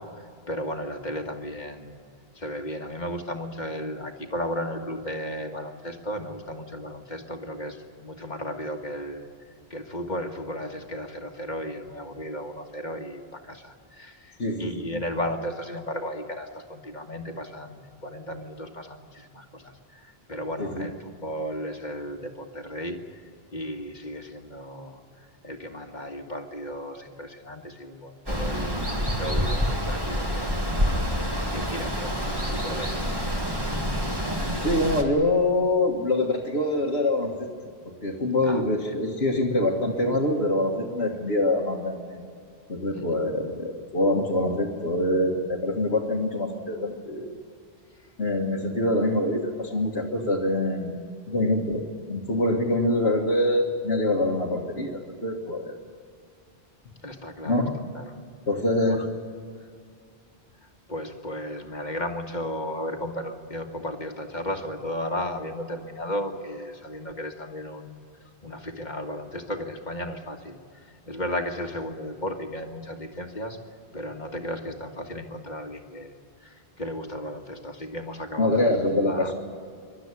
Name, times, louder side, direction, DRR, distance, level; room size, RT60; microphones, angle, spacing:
voice 1, 0.0-2.0 2.3-9.3 9.7-23.2 23.5-30.7 31.5-34.0 38.4-38.6 42.9-43.0 57.0-57.7 57.9-58.1 58.9-59.1 60.6-73.6 73.9-76.1 76.4-78.7 79.0-79.3, equal, 45° left, 4 dB, 1.8 m, -35 dB
voice 2, 14.4-15.0 20.6-20.9 34.6-37.3 37.9-42.2 42.7-47.3 48.2-50.9 51.3-51.8 52.1-55.7 57.4-57.8 58.5-59.0 78.4-79.3, left 1 dB, 90° left, -4 dB, 2.0 m, -25 dB
Water, 28.3-35.0, equal, 20° right, 2.2 m, -27 dB
27.5 x 12.5 x 9.7 m, 2.3 s
omnidirectional pair, 1.1 m